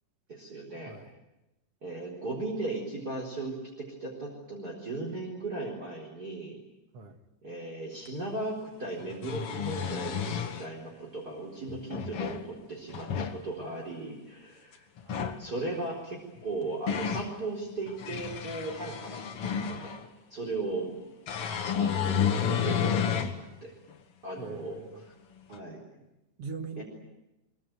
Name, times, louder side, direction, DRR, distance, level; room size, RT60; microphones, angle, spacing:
voice 1, 0.3-0.9 1.8-6.6 7.4-14.9 15.4-19.9 20.3-20.9 21.7-23.7 24.2-25.0 25.5-25.8 26.8-26.9, right 2 dB, 25° right, -1 dB, 4.6 m, -37 dB
sound 1, 8.1-8.2 9.0-10.7 11.7-12.4 12.9-13.4 15.0-15.4 16.4-17.3 17.9-20.1 21.3-23.4 23.9-24.0 25.5-25.6, left 7 dB, 50° left, 2.2 m, -31 dB
voice 2, 24.4-25.0 26.4-26.8, right 4 dB, 55° right, 6 dB, 2.4 m, -41 dB
23.5 x 23.5 x 9.2 m, 0.95 s
omnidirectional pair, 3.8 m